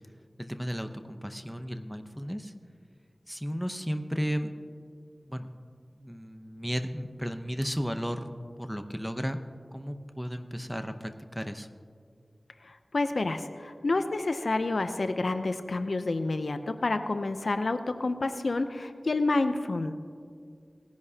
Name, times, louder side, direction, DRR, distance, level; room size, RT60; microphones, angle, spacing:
voice 1, 0.4-2.5 3.3-4.5 5.3-5.5 6.0-8.3 8.6-9.4 9.7-11.7, equal, ahead, 8 dB, 0.7 m, -34 dB
voice 2, 12.6-19.9, left 2 dB, 75° left, 9 dB, 0.5 m, -29 dB
18.5 x 10.5 x 2.8 m, 2.1 s
wide cardioid pair, 50°, 0 cm